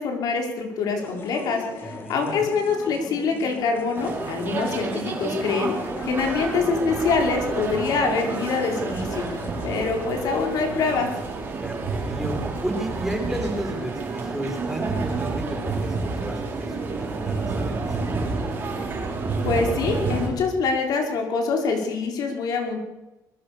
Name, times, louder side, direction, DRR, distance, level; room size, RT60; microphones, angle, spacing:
voice 1, 0.0-9.3 9.6-11.1 19.4-22.8, left 4 dB, 65° left, 3 dB, 5.3 m, -25 dB
sound 1, 1.0-9.9, left 4 dB, 30° left, 2.9 m, -40 dB
voice 2, 1.8-2.4 11.6-18.5, right 1 dB, 5° right, 2 dB, 5.7 m, -33 dB
sound 2, 3.9-20.3, right 3 dB, 30° right, 6.7 m, -29 dB
24.0 x 23.0 x 7.0 m, 1.0 s
cardioid pair, 165°, 7 cm